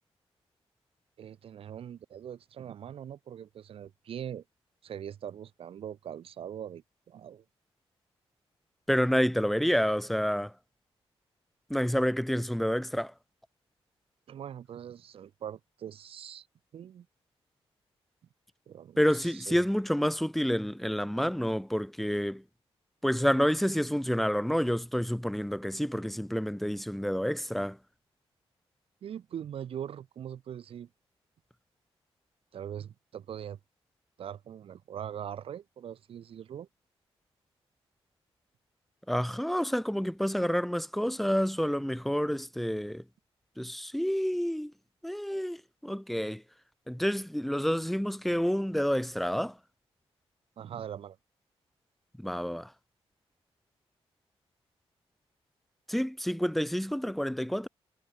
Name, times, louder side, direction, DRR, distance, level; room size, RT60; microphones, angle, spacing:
voice 1, 1.2-4.4 4.8-7.4 14.3-16.5 16.7-17.1 18.7-19.6 29.0-30.9 32.5-33.6 34.2-36.7 50.6-51.2, right 9 dB, 65° right, 5.8 m, -42 dB
voice 2, 8.9-10.5 11.7-13.1 19.0-22.4 23.0-27.8 39.1-43.0 43.6-44.7 45.0-46.4 46.9-49.6 52.2-52.7 55.9-57.7, equal, ahead, 3.9 m, -29 dB
wide cardioid pair, 170°, 10 cm